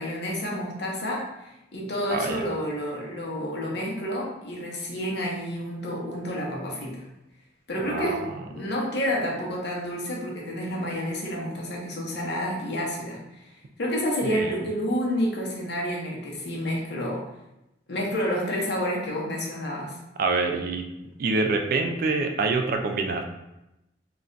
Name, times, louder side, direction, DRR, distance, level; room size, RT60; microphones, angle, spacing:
voice 1, 0.0-7.0 7.7-13.5 13.8-17.2 17.9-20.0, equal, 65° left, -2 dB, 0.7 m, -29 dB
voice 2, 2.1-2.4 7.8-8.3 14.2-14.6 20.2-20.9 21.2-23.2, right 3 dB, 50° right, 4 dB, 0.3 m, -26 dB
2.4 x 2.2 x 3.7 m, 0.91 s
head